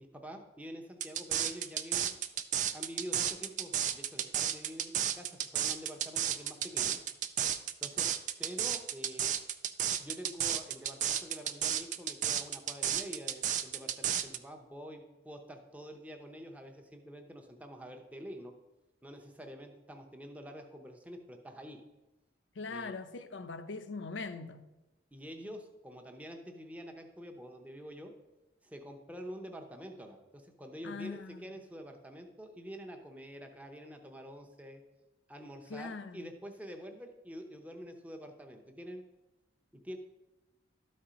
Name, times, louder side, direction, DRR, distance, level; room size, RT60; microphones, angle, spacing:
voice 1, 0.0-2.1 2.7-7.0 7.8-8.1 8.4-9.3 10.0-18.5 19.0-21.8 22.7-22.9 25.1-28.1 28.6-34.8 35.3-39.0 39.7-40.0, equal, 10° right, 0.7 m, -47 dB
sound 1, 1.0-14.4, right 10 dB, 40° right, 0.4 m, -32 dB
voice 2, 22.5-24.7 30.8-31.5 35.7-36.3, left 4 dB, 75° left, 0.6 m, -41 dB
12.5 x 4.3 x 5.1 m
head